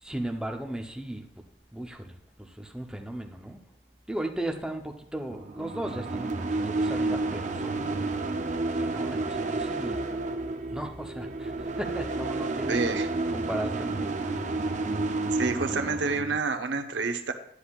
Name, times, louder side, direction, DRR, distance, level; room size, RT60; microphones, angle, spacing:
voice 1, 0.0-1.3 1.7-2.1 2.4-3.6 4.1-6.3 6.7-8.2 8.7-10.1 10.7-12.8 13.3-14.5, right 1 dB, 5° right, 2 dB, 0.7 m, -36 dB
sound 1, 5.3-16.4, right 2 dB, 40° right, 0.6 m, -30 dB
voice 2, 12.7-13.1 15.3-17.3, right 4 dB, 80° right, 7 dB, 0.8 m, -28 dB
10.0 x 9.8 x 2.4 m, 0.72 s
head